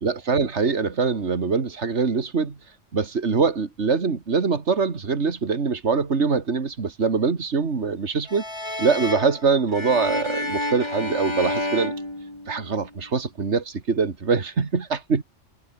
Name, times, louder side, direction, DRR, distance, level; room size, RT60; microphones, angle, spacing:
voice 1, 0.0-2.6 2.9-8.4 8.8-11.9 12.5-15.2, right 5 dB, 70° right, 2.3 m, -23 dB
sound 1, 8.3-12.9, left 1 dB, 25° left, 3.5 m, -30 dB
omnidirectional pair, 1.2 m